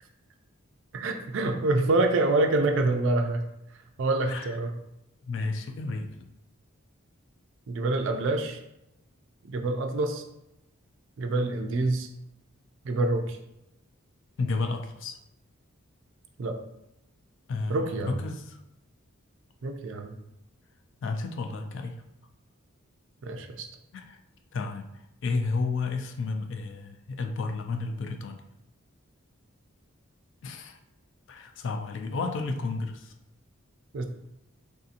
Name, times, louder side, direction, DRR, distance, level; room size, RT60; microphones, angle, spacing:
voice 1, 0.9-3.4 4.0-4.7 7.7-8.6 9.5-10.2 11.2-12.1 12.8-13.4 16.4-16.5 17.7-18.2 19.6-20.1 23.2-23.7 33.9-34.0, right 2 dB, 55° right, 5 dB, 0.4 m, -26 dB
voice 2, 4.3-4.6 5.3-6.3 14.4-15.2 17.5-18.6 21.0-22.0 23.9-24.2 24.5-28.4 30.4-30.8 31.3-33.1, left 3 dB, 55° left, 6 dB, 0.3 m, -32 dB
3.5 x 2.7 x 2.4 m, 0.85 s
head